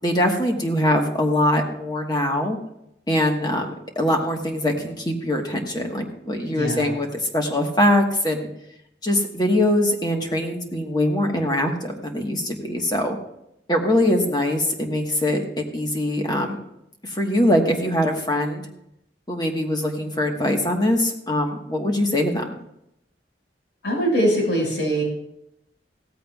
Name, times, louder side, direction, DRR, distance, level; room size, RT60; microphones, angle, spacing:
voice 1, 0.0-2.6 3.1-8.5 9.0-13.2 13.7-16.6 17.0-18.7 19.3-22.6, left 1 dB, 25° left, 2 dB, 1.4 m, -22 dB
voice 2, 6.5-6.9 23.8-25.0, right 1 dB, 85° left, -1 dB, 5.5 m, -22 dB
16.5 x 14.5 x 2.4 m, 0.80 s
head